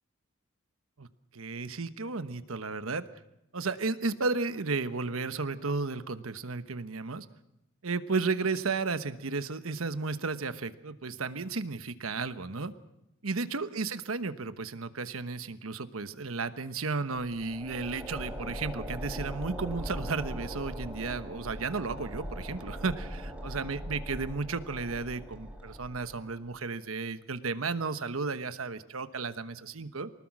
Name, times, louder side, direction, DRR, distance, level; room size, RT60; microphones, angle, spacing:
voice 1, 1.3-3.1 3.5-7.3 7.8-12.7 13.2-30.1, right 4 dB, 90° right, 11 dB, 1.1 m, -33 dB
sound 1, 17.3-26.5, equal, 5° right, 3.5 m, -40 dB
24.5 x 19.5 x 6.1 m, 0.87 s
head